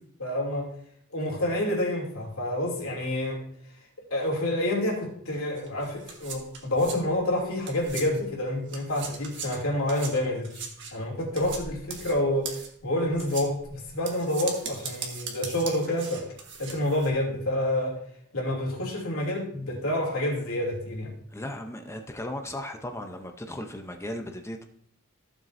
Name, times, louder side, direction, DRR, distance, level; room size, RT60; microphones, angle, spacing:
voice 1, 0.2-0.7 1.1-3.4 4.1-10.6 10.9-12.5 12.8-16.2 16.6-18.0 18.3-21.1, left 1 dB, 70° left, -1 dB, 2.8 m, -28 dB
sound 1, 5.6-8.4 8.7-17.1, right 5 dB, 60° right, 1.6 m, -40 dB
voice 2, 21.3-24.6, left 1 dB, 10° left, 5 dB, 0.7 m, -36 dB
15.0 x 7.3 x 2.6 m, 0.67 s
head